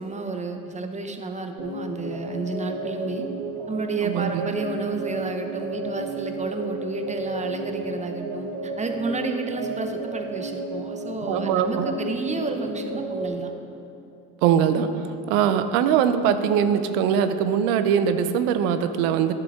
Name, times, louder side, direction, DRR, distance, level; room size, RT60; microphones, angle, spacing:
voice 1, 0.0-3.3 3.7-13.6, right 3 dB, 20° right, 5 dB, 0.8 m, -31 dB
sound 1, 1.6-13.3, right 2 dB, 45° right, 1.9 m, -33 dB
voice 2, 4.0-4.5 11.2-11.9 14.4-19.3, right 8 dB, 85° right, 10 dB, 0.6 m, -22 dB
10.5 x 6.9 x 3.5 m, 2.8 s
supercardioid pair, 85°, 39 cm